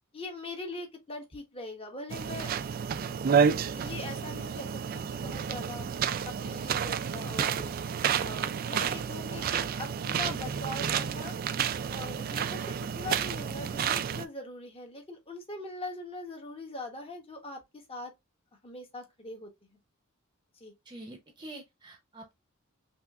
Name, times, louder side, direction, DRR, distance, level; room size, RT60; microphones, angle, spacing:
voice 1, 0.1-2.5 3.7-5.9 6.3-7.7 8.2-11.3 11.9-17.6 17.9-18.1 18.6-19.5 20.6-20.7, left 2 dB, 25° left, 1.0 m, -41 dB
sound 1, 2.1-14.3, right 7 dB, 45° right, 0.3 m, -30 dB
voice 2, 20.9-22.3, right 1 dB, 20° right, 0.7 m, -46 dB
5.8 x 2.5 x 2.3 m
head